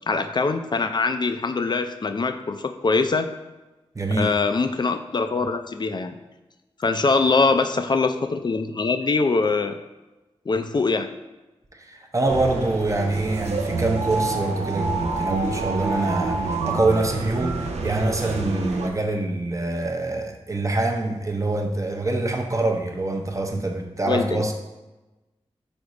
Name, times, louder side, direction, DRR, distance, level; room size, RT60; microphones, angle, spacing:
voice 1, 0.1-3.3 4.2-6.1 6.8-9.8 10.5-11.1 24.0-24.5, left 4 dB, 40° left, 8 dB, 0.4 m, -23 dB
voice 2, 3.9-4.3 11.8-24.5, right 2 dB, 30° right, 2 dB, 0.6 m, -25 dB
sound 1, 12.3-18.9, right 3 dB, 85° right, 0.4 m, -28 dB
5.1 x 2.0 x 4.7 m, 1.1 s
cardioid pair, 45°, 11 cm